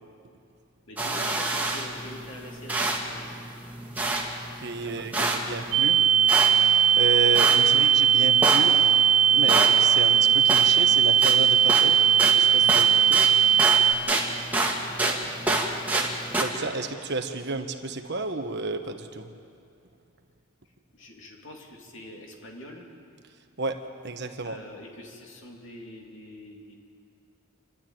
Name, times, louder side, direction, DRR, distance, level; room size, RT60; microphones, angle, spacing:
voice 1, 0.9-3.4 4.8-5.6 7.7-7.9 14.9-15.5 20.9-22.8 24.4-26.8, left 1 dB, 60° left, 0 dB, 3.1 m, -45 dB
sound 1, 1.0-16.4, right 2 dB, 10° right, 1.8 m, -29 dB
voice 2, 4.5-6.0 6.9-8.8 9.3-13.2 16.4-19.3 23.6-23.8 24.0-24.6, right 3 dB, 55° right, 6 dB, 1.3 m, -32 dB
sound 2, 5.7-13.9, right 8 dB, 80° right, 0.8 m, -19 dB
27.5 x 12.0 x 9.1 m, 2.4 s
head